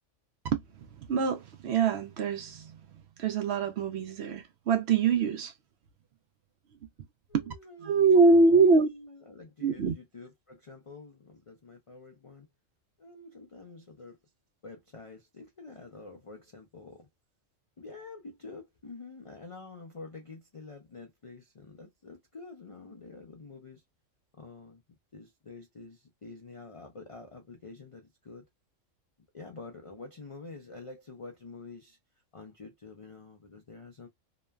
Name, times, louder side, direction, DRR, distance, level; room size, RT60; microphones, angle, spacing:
voice 1, 1.0-2.7 3.2-5.5 7.3-7.5 7.8-8.9 9.6-9.9, right 4 dB, 65° right, 0.7 m, -24 dB
voice 2, 7.3-12.5 13.0-14.2 14.6-17.1 17.8-23.8 24.3-24.8 25.1-28.5 29.3-32.0 32.3-34.1, left 3 dB, 55° left, 0.3 m, -47 dB
3.0 x 2.1 x 2.2 m
omnidirectional pair, 1.3 m